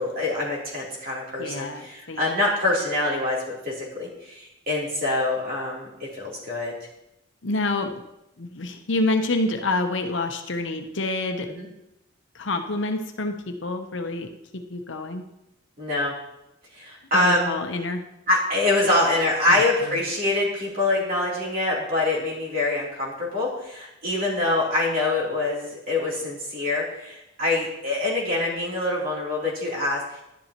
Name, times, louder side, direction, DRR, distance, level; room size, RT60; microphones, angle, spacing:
voice 1, 0.0-6.7 11.5-11.7 15.8-16.1 16.7-17.6 18.3-30.2, left 2 dB, 45° right, -4 dB, 3.1 m, -25 dB
voice 2, 1.4-2.4 7.4-8.0 8.4-11.5 12.3-15.2 17.1-18.0 19.5-20.1, left 2 dB, 65° left, 5 dB, 0.9 m, -28 dB
11.5 x 11.0 x 3.0 m, 0.87 s
head